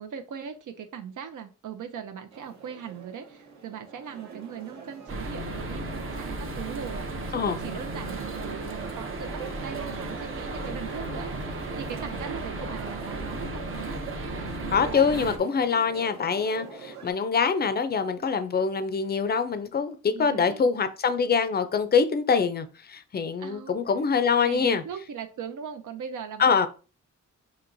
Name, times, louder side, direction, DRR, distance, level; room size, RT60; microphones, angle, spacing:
voice 1, 0.0-9.3 9.6-13.6 20.1-20.7 23.4-23.8 24.4-26.7, right 7 dB, 80° right, 0.6 m, -39 dB
sound 1, 2.3-17.1, right 5 dB, 65° right, 0.9 m, -44 dB
sound 2, 5.1-15.4, right 2 dB, 45° right, 0.6 m, -35 dB
voice 2, 14.7-24.8 26.4-26.7, left 5 dB, 35° left, 0.4 m, -24 dB
6.0 x 2.9 x 2.6 m
wide cardioid pair, 165°, 30 cm